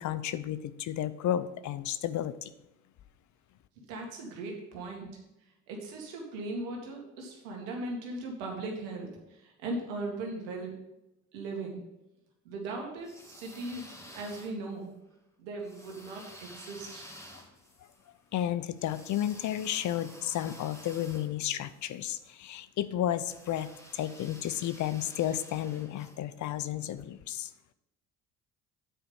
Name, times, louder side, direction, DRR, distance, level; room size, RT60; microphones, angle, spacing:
voice 1, 0.0-2.5 18.3-27.5, left 11 dB, 55° left, 14 dB, 0.6 m, -32 dB
voice 2, 3.8-5.1 5.7-10.8 11.3-11.8 12.5-14.9 15.4-17.1, right 2 dB, 85° right, 1 dB, 2.0 m, -38 dB
sound 1, 13.0-14.9 15.6-22.0 23.2-26.2, equal, 10° left, 2.2 m, -51 dB
8.9 x 5.0 x 5.5 m, 0.92 s
supercardioid pair, 65°, 35 cm